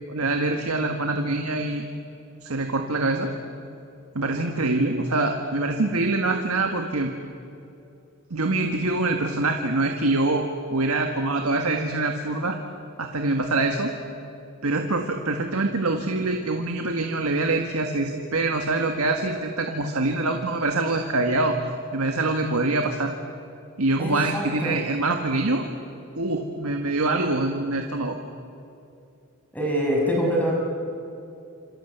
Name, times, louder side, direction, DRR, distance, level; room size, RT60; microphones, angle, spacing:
voice 1, 0.1-1.8 2.4-3.3 4.1-7.1 8.3-12.6 13.0-13.9 14.6-21.6 21.9-23.1 23.8-25.6 26.2-28.2, right 2 dB, 80° right, 4 dB, 1.7 m, -24 dB
voice 2, 24.0-24.8 29.5-30.5, equal, 5° left, -2 dB, 6.3 m, -25 dB
27.5 x 26.5 x 8.1 m, 2.7 s
head